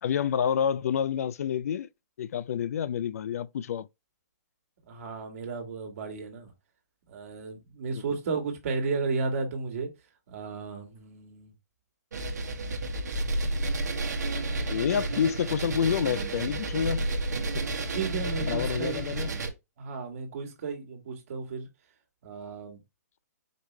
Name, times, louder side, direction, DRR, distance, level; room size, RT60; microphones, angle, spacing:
voice 1, 0.0-1.9 2.2-3.9 14.7-17.1 17.5-17.6 18.4-19.3, left 8 dB, 60° left, 0.3 m, -28 dB
voice 2, 4.9-6.5 7.1-9.9 10.3-11.5 17.9-19.0 19.8-21.7 22.2-22.8, right 4 dB, 55° right, 1.8 m, -33 dB
sound 1, 12.1-19.5, right 2 dB, 80° right, 1.3 m, -31 dB
5.2 x 3.0 x 3.2 m
hypercardioid pair, 140°, 9 cm